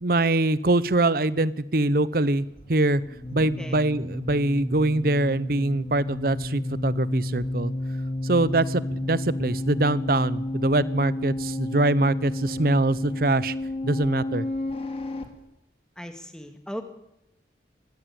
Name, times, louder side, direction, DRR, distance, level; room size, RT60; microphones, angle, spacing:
voice 1, 0.0-3.0 3.3-7.7 8.2-13.5 13.8-14.5, right 2 dB, 55° right, 18 dB, 0.8 m, -23 dB
sound 1, 2.4-15.2, left 1 dB, 30° left, 2.6 m, -32 dB
voice 2, 3.4-3.8 16.0-16.8, equal, 5° left, 7 dB, 2.2 m, -38 dB
22.5 x 15.5 x 8.8 m, 0.86 s
head